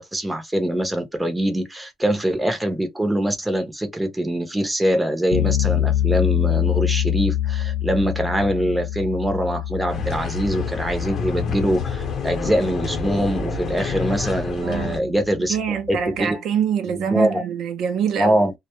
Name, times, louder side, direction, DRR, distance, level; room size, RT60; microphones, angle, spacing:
voice 1, 0.0-15.6 15.9-16.4 16.8-17.4 18.2-18.5, right 1 dB, 5° right, 0.6 m, -23 dB
sound 1, 5.3-16.2, left 11 dB, 85° left, 0.3 m, -26 dB
sound 2, 9.9-15.0, left 4 dB, 40° left, 0.8 m, -28 dB
voice 2, 14.6-15.2 15.5-18.4, right 8 dB, 55° right, 0.5 m, -25 dB
2.1 x 2.0 x 2.9 m
cardioid pair, 145°, 0 cm